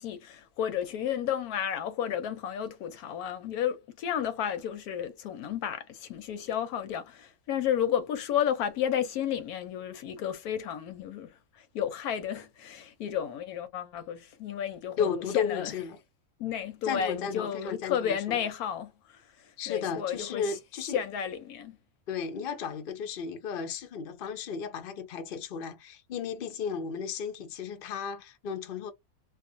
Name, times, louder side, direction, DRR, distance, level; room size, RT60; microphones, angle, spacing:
voice 1, 0.0-11.3 11.7-15.7 16.4-19.2 19.7-20.5 20.9-21.8, left 9 dB, 85° left, 1.1 m, -32 dB
voice 2, 15.0-16.0 16.8-18.4 19.6-21.0 22.1-28.9, left 7 dB, 55° left, 0.6 m, -34 dB
2.4 x 2.4 x 2.6 m
omnidirectional pair, 1.6 m